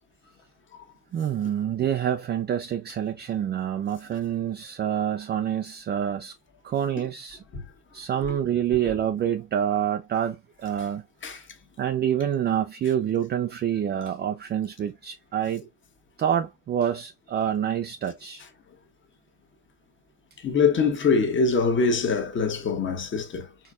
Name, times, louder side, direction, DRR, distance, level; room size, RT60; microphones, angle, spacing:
voice 1, 1.1-6.3 6.6-7.4 7.9-11.0 11.8-15.6 16.2-18.4, right 9 dB, 25° right, 0.4 m, -27 dB
voice 2, 20.4-23.5, left 4 dB, 30° left, 1.3 m, -23 dB
4.4 x 4.0 x 2.4 m
supercardioid pair, 105°, 42 cm